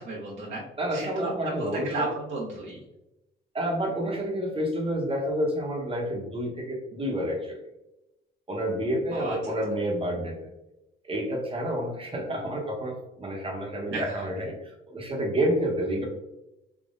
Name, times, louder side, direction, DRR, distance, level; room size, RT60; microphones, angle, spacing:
voice 1, 0.0-0.6 0.9-2.8 9.1-9.4 13.9-14.3, right 2 dB, 70° right, -5 dB, 1.1 m, -33 dB
voice 2, 0.8-2.1 3.5-7.6 8.5-10.5 11.0-16.1, equal, 30° right, 0 dB, 1.0 m, -29 dB
3.7 x 2.9 x 2.5 m, 0.93 s
cardioid pair, 90°, 20 cm